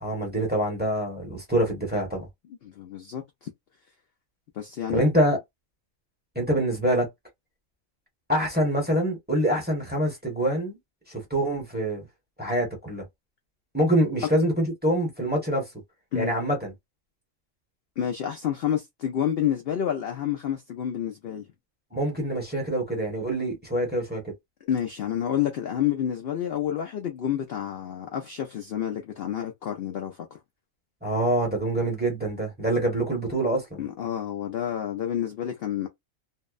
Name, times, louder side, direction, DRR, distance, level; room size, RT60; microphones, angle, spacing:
voice 1, 0.0-2.3 4.9-5.4 6.3-7.1 8.3-10.8 11.1-12.0 12.4-13.0 13.7-15.7 16.1-16.7 21.9-24.3 31.0-33.8, right 1 dB, 10° right, 0.9 m, -25 dB
voice 2, 2.6-3.5 4.6-5.0 16.1-16.4 18.0-21.4 24.6-30.4 33.8-35.9, left 10 dB, 65° left, 0.6 m, -29 dB
2.7 x 2.1 x 2.3 m
omnidirectional pair, 1.4 m